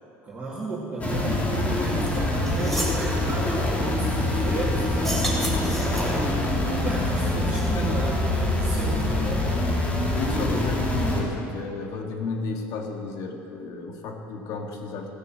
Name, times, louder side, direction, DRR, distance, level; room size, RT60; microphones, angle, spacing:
voice 1, 0.2-5.3 5.9-6.4 6.7-9.6, right 3 dB, 25° right, -7 dB, 2.6 m, -34 dB
sound 1, 1.0-11.2, left 1 dB, 25° left, 2.8 m, -25 dB
sound 2, 2.1-2.2 2.4-3.0 4.9-6.3, equal, 5° left, 3.4 m, -31 dB
voice 2, 7.5-8.1 10.1-15.1, left 3 dB, 65° left, 3 dB, 1.8 m, -33 dB
16.0 x 6.8 x 7.5 m, 2.8 s
supercardioid pair, 95°, 6 cm